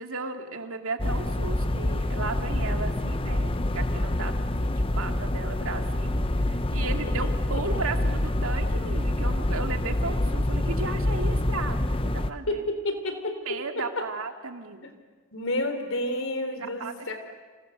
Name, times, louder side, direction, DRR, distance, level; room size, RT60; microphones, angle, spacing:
voice 1, 0.0-11.8 12.1-12.6 13.4-14.9 16.8-17.1, right 3 dB, 70° right, 5 dB, 2.3 m, -35 dB
sound 1, 1.0-12.3, left 1 dB, 25° left, 0.8 m, -26 dB
voice 2, 12.5-13.3 13.8-13.9 14.8-14.9 15.3-17.2, left 1 dB, 65° left, 6 dB, 4.0 m, -30 dB
30.0 x 27.5 x 6.8 m, 1.4 s
head